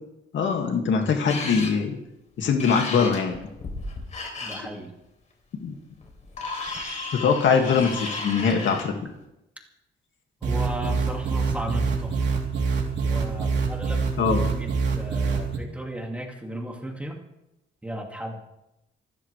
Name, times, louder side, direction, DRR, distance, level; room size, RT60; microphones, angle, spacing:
voice 1, 0.3-2.0 2.4-3.4 4.5-4.7 5.6-5.8 7.1-9.1 14.2-14.4, left 5 dB, 70° left, 3 dB, 2.2 m, -22 dB
sound 1, 1.3-1.7 2.6-4.6 6.0-8.9, left 3 dB, 35° left, 3.4 m, -34 dB
voice 2, 4.4-4.9 10.4-12.4 13.1-17.2 17.8-18.4, equal, 5° right, 1 dB, 2.2 m, -35 dB
sound 2, 10.4-15.6, right 5 dB, 60° right, 3.4 m, -25 dB
26.5 x 13.5 x 3.4 m, 0.90 s
wide cardioid pair, 160°, 20 cm